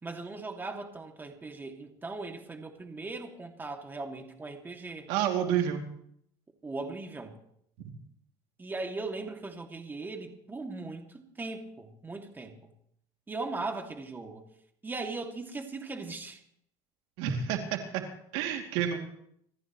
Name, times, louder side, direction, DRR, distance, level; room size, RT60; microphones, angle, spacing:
voice 1, 0.0-5.1 6.6-7.3 8.6-12.6 13.3-14.4 14.8-16.4, right 3 dB, 20° right, 3 dB, 2.4 m, -39 dB
voice 2, 5.1-5.8 7.8-7.9 17.2-18.0 18.3-19.0, right 9 dB, 80° right, 3 dB, 2.7 m, -29 dB
27.5 x 14.5 x 3.2 m, 0.70 s
supercardioid pair, 110°, 11 cm